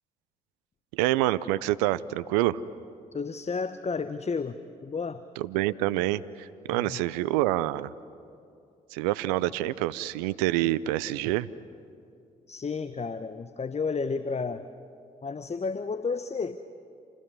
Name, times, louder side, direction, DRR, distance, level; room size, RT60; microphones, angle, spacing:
voice 1, 0.9-2.6 5.4-7.9 8.9-11.5, right 15 dB, 85° right, 17 dB, 0.6 m, -27 dB
voice 2, 3.1-5.2 6.7-7.0 12.5-14.7 15.2-16.6, left 4 dB, 30° left, 12 dB, 1.0 m, -32 dB
27.5 x 19.0 x 9.6 m, 2.5 s
hypercardioid pair, 45°, 20 cm